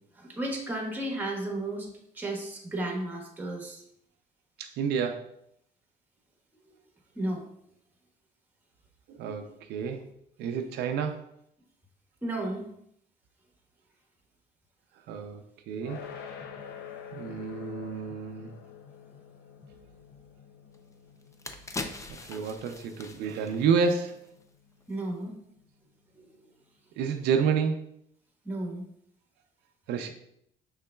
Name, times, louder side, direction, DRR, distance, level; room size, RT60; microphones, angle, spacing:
voice 1, 0.1-1.9 2.1-3.8 7.1-7.4 12.2-12.7 24.9-25.4 26.2-26.3 28.4-28.8, right 1 dB, 10° right, 0 dB, 1.2 m, -33 dB
voice 2, 4.6-5.3 9.1-10.0 10.4-11.3 15.1-16.0 17.1-18.5 22.3-24.3 27.0-27.8 29.9-30.1, right 6 dB, 80° right, 5 dB, 0.5 m, -29 dB
sound 1, 15.8-26.8, left 8 dB, 80° left, 0.6 m, -48 dB
sound 2, 20.7-20.8 21.2-24.5 24.8-25.0, left 3 dB, 20° left, 0.5 m, -41 dB
6.3 x 3.7 x 2.2 m, 0.72 s
cardioid pair, 110°, 17 cm